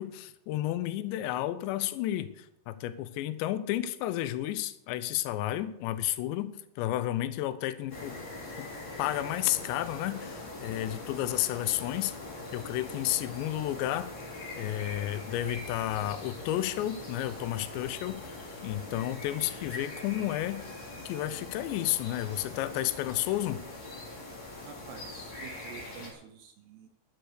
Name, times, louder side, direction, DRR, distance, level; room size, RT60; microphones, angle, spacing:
voice 1, 0.0-8.2 8.6-8.7 9.0-12.2 12.5-14.1 14.6-20.6 21.1-23.6, left 13 dB, 75° left, 13 dB, 2.8 m, -32 dB
sound 1, 7.9-26.1, left 2 dB, 35° left, 4.1 m, -42 dB
voice 2, 24.6-26.9, right 8 dB, 75° right, 5 dB, 2.6 m, -49 dB
12.0 x 9.4 x 6.6 m, 0.80 s
omnidirectional pair, 5.7 m